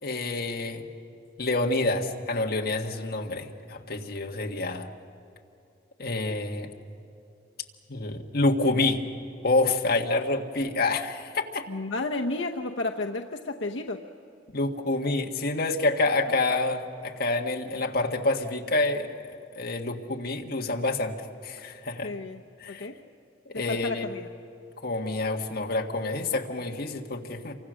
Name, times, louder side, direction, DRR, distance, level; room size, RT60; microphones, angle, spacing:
voice 1, 0.0-0.8 1.4-4.9 6.0-6.7 7.9-9.1 9.4-11.6 14.5-21.1 21.4-22.1 22.6-22.9 23.5-24.1 24.8-27.5, left 2 dB, 55° left, 2 dB, 1.7 m, -27 dB
voice 2, 11.7-14.0 22.0-22.4 22.7-23.0 23.5-24.3, left 2 dB, 80° left, 3 dB, 1.0 m, -32 dB
28.0 x 24.5 x 6.4 m, 2.7 s
head